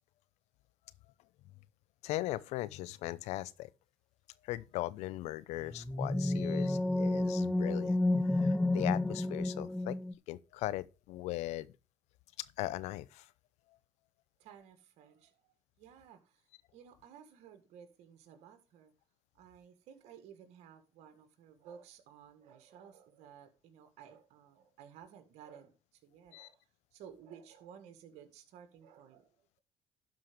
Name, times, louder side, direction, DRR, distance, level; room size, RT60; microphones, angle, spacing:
voice 1, 2.0-3.7 4.4-8.0 8.2-10.0 10.3-11.7 12.4-13.3 26.3-26.5, left 16 dB, 75° left, 0.7 m, -39 dB
sound 1, 5.7-10.1, left 2 dB, 5° left, 0.6 m, -31 dB
voice 2, 14.4-15.4 15.8-16.4 16.7-18.9 19.3-26.6 26.9-29.3, right 8 dB, 75° right, 1.9 m, -55 dB
12.0 x 4.9 x 5.1 m
supercardioid pair, 75°, 12 cm